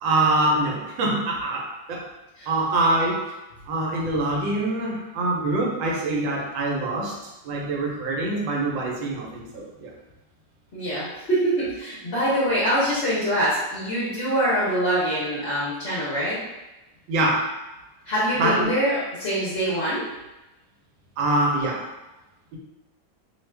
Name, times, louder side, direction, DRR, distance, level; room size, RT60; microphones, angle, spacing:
voice 1, 0.0-2.1 2.5-3.3 3.7-7.2 7.4-9.9 17.1-17.5 18.4-18.8 21.2-21.8, right 2 dB, 80° right, -2 dB, 1.4 m, -24 dB
voice 2, 10.7-16.4 18.0-20.0, equal, 45° left, -10 dB, 0.9 m, -24 dB
3.0 x 2.3 x 3.2 m, 1.0 s
omnidirectional pair, 2.0 m